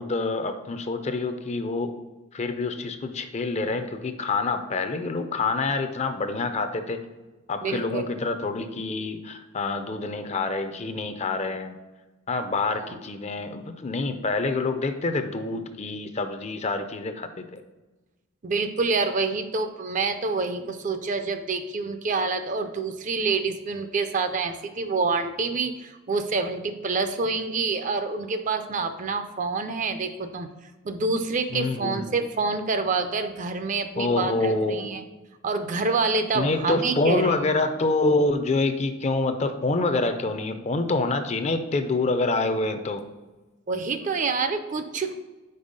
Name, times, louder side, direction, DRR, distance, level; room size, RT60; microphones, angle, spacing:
voice 1, 0.0-1.9 2.3-7.0 7.5-11.8 12.3-17.6 31.5-32.0 34.0-35.0 36.3-43.0, left 3 dB, 30° left, 9 dB, 0.4 m, -26 dB
voice 2, 7.6-8.1 12.7-13.0 18.4-30.5 30.8-35.0 35.4-37.3 43.7-45.2, right 4 dB, 40° right, 9 dB, 0.4 m, -27 dB
5.4 x 4.4 x 5.1 m, 1.1 s
head